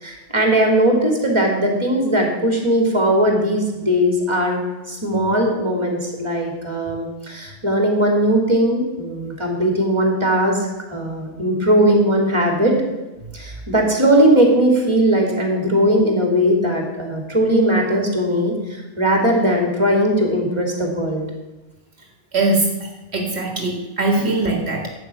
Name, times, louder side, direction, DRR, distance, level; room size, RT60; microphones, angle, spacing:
voice 1, 0.0-4.6 4.9-10.6 10.9-12.7 13.3-18.5 19.0-21.2, right 1 dB, 25° right, 1 dB, 2.7 m, -18 dB
voice 2, 22.3-24.9, right 2 dB, 75° right, 2 dB, 1.9 m, -21 dB
11.5 x 8.2 x 5.9 m, 1.1 s
omnidirectional pair, 1.1 m